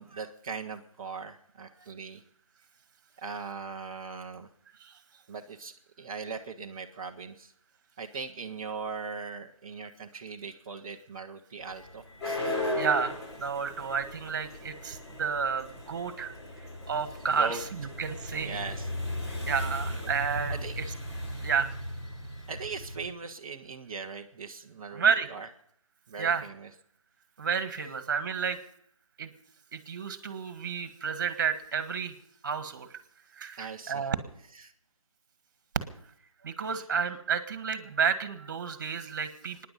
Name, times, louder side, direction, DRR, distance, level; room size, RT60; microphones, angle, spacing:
voice 1, 0.0-2.2 3.2-4.5 5.3-5.7 6.0-7.5 8.0-12.9 13.7-13.8 17.4-17.9 18.4-18.9 20.0-20.1 20.5-20.8 22.5-25.5 26.1-26.7 33.6-34.1 34.4-34.7 36.7-36.9, right 5 dB, 10° right, -5 dB, 0.5 m, -40 dB
sound 1, 11.6-23.1, left 1 dB, 50° left, 6.0 m, -36 dB
voice 2, 12.8-18.6 19.3-20.9 21.4-21.7 24.9-25.3 26.2-26.5 27.4-28.6 29.2-29.3 29.7-32.1 32.4-32.9 33.3-34.2 36.4-39.7, right 6 dB, 35° right, 11 dB, 1.6 m, -31 dB
24.0 x 10.5 x 5.4 m, 0.67 s
figure-of-eight pair, 165°, 18 cm